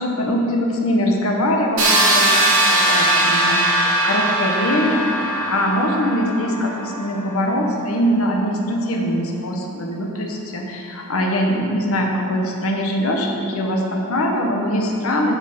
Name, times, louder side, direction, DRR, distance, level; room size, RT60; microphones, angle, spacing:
voice 1, 0.0-15.4, equal, 70° left, 1 dB, 1.1 m, -22 dB
sound 1, 1.8-7.6, right 1 dB, 65° right, 2.5 m, -20 dB
7.7 x 6.5 x 6.6 m, 2.7 s
head